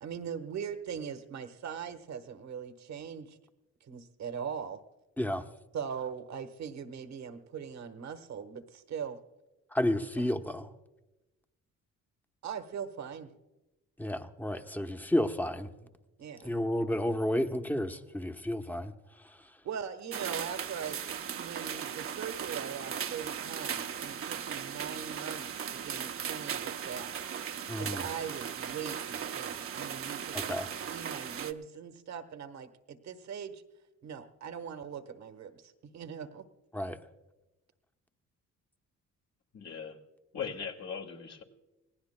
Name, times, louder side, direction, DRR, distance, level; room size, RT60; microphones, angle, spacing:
voice 1, 0.0-3.4 3.8-4.8 5.7-9.2 12.4-13.3 16.2-16.5 19.6-21.0 21.3-27.1 27.8-33.6 34.0-36.5, right 7 dB, 65° right, 1.3 m, -41 dB
voice 2, 9.7-10.7 14.0-15.7 16.4-18.9 19.2-19.4 27.7-28.1 30.3-30.7 36.7-37.0, left 1 dB, 5° left, 1.0 m, -31 dB
sound 1, 20.1-31.5, right 8 dB, 45° right, 0.8 m, -37 dB
voice 3, 39.5-40.0 40.3-41.4, left 6 dB, 60° left, 2.2 m, -39 dB
27.0 x 19.0 x 2.2 m
cardioid pair, 90°, 30 cm